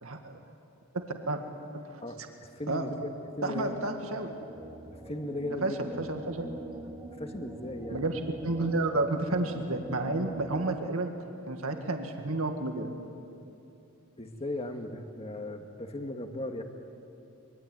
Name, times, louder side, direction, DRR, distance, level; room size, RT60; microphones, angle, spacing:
voice 1, 0.0-0.4 0.9-1.4 1.9-2.0 2.7-2.9 3.4-4.3 5.6-5.7 6.0-6.5 7.9-8.1 8.4-11.1 11.5-12.9, right 2 dB, 75° right, 4 dB, 2.1 m, -31 dB
voice 2, 2.0-3.8 4.9-5.8 7.2-8.2 14.2-16.6, left 1 dB, 30° left, 5 dB, 1.9 m, -37 dB
sound 1, 3.3-10.6, right 1 dB, 15° right, 1.9 m, -44 dB
25.0 x 23.5 x 9.4 m, 2.8 s
head